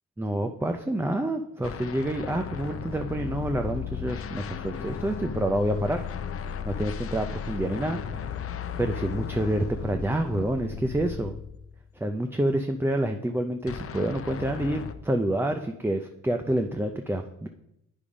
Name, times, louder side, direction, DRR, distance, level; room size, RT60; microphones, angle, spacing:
voice 1, 0.2-6.0 6.6-8.3 8.8-11.4 12.0-17.5, right 1 dB, 10° right, 6 dB, 0.5 m, -28 dB
sound 1, 1.6-11.9 13.7-14.9, left 7 dB, 50° left, 0.7 m, -35 dB
8.4 x 5.4 x 5.0 m, 0.83 s
cardioid pair, 90°, 30 cm